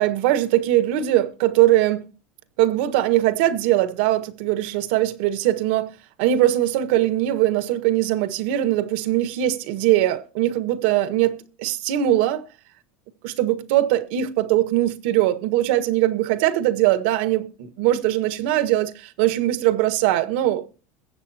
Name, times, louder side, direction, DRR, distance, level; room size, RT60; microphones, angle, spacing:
voice 1, 0.0-2.1 2.6-5.9 6.2-12.4 13.2-20.7, right 14 dB, 65° right, 1.6 m, -21 dB
21.5 x 8.6 x 2.8 m
cardioid pair, 165°, 6 cm